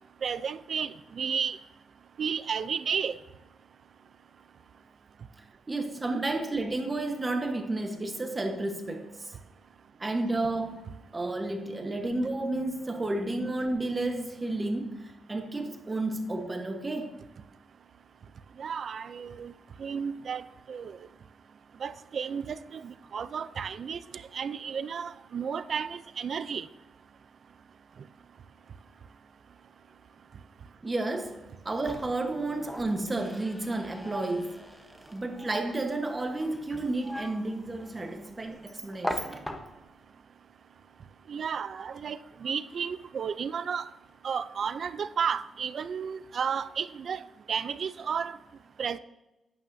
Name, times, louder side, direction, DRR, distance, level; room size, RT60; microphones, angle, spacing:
voice 1, 0.2-1.6 2.2-3.2 18.6-19.5 19.8-20.4 20.7-21.0 21.8-24.0 24.3-26.7 41.3-43.9 44.2-47.2 47.5-48.4 48.8-49.0, right 7 dB, 50° right, 0.4 m, -32 dB
voice 2, 5.7-9.3 10.0-17.2 30.8-34.6 35.1-39.5 41.7-41.8, right 2 dB, 20° right, 1.0 m, -32 dB
sound 1, 31.5-40.0, equal, 5° left, 0.9 m, -41 dB
11.0 x 9.3 x 2.6 m
wide cardioid pair, 150°, 0 cm